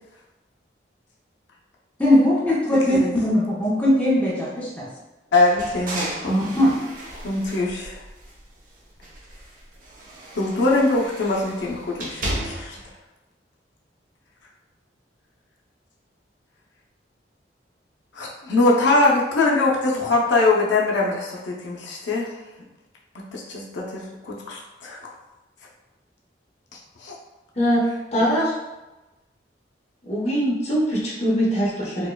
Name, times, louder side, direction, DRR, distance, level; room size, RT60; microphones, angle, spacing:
voice 1, 2.0-4.8 6.3-6.7, left 1 dB, 10° left, -6 dB, 0.6 m, -20 dB
voice 2, 2.9-3.4 5.3-6.4 7.2-8.0 10.3-12.8 18.1-22.3 23.1-25.0 27.0-27.1, left 2 dB, 80° left, -3 dB, 0.6 m, -22 dB
sound 1, 5.4-8.6 9.0-12.9, right 1 dB, 50° right, 0.6 m, -35 dB
voice 3, 27.6-27.9 28.1-28.5 30.0-32.1, equal, 35° left, -5 dB, 0.9 m, -22 dB
4.4 x 2.2 x 2.2 m, 1.1 s
head